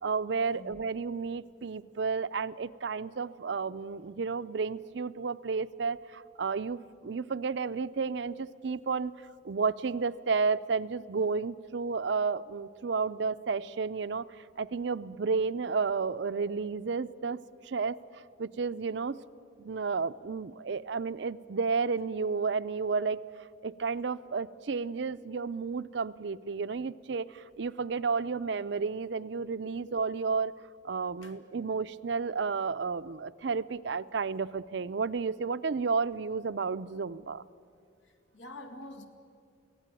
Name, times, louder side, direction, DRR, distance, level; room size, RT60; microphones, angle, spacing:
voice 1, 0.0-9.1 9.4-14.2 14.6-17.4 17.6-18.0 18.4-19.2 19.6-23.2 23.6-30.5 30.8-37.4, right 5 dB, 65° right, 15 dB, 0.5 m, -32 dB
voice 2, 38.0-39.1, left 2 dB, 80° left, 5 dB, 2.1 m, -46 dB
24.0 x 16.5 x 9.0 m, 2.4 s
head